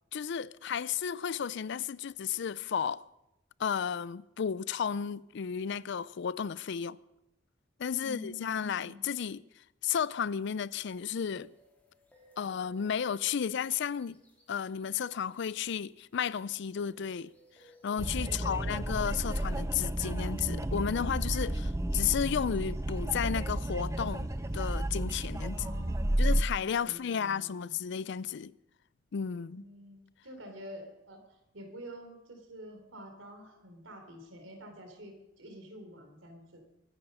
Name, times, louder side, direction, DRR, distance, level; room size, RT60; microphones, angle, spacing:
voice 1, 0.1-3.0 3.6-7.0 7.8-9.4 9.8-11.5 12.4-14.2 14.5-17.3 17.8-24.3 24.5-25.6 26.2-28.5 29.1-29.6, left 7 dB, 65° left, 0.4 m, -33 dB
voice 2, 8.0-9.0 18.2-18.7 25.5-27.8 29.5-36.6, equal, 90° right, 3.7 m, -48 dB
sound 1, 10.9-16.2 16.6-20.9 21.2-21.3 21.7-25.4 25.9-26.3, left 2 dB, 10° left, 3.0 m, -61 dB
sound 2, 18.0-26.4, right 1 dB, 15° right, 0.6 m, -32 dB
23.5 x 10.0 x 5.5 m
head